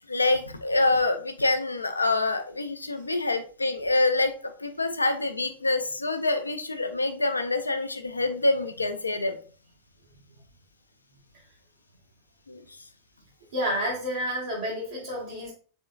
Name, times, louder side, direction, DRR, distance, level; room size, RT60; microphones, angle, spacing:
voice 1, 0.1-9.4 12.5-12.6, left 2 dB, 80° left, 8 dB, 0.4 m, -26 dB
voice 2, 13.5-15.5, equal, 65° right, -6 dB, 1.2 m, -30 dB
4.3 x 3.6 x 2.3 m, 0.41 s
figure-of-eight pair, 90°, 0 cm